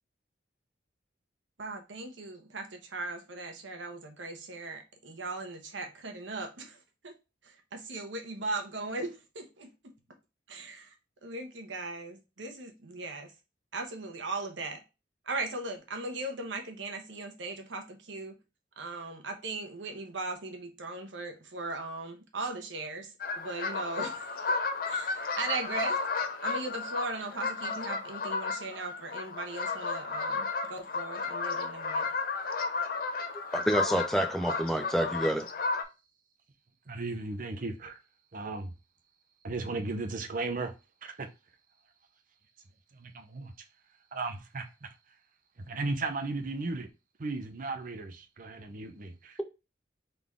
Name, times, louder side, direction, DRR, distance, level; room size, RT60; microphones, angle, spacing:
voice 1, 1.6-7.1 7.4-9.7 10.5-10.9 11.2-13.3 13.7-14.8 15.2-18.4 18.8-24.3 24.9-26.0 26.4-32.1, right 3 dB, 85° right, 1.0 m, -38 dB
sound 1, 23.2-35.8, left 4 dB, 50° left, 0.6 m, -33 dB
voice 2, 33.5-35.5, right 1 dB, ahead, 0.4 m, -28 dB
voice 3, 36.9-38.0 38.3-38.7 39.4-40.7 41.0-41.3 42.9-43.5 44.1-44.9 45.7-46.9 47.2-49.4, right 3 dB, 45° right, 0.6 m, -35 dB
3.9 x 3.4 x 3.5 m
head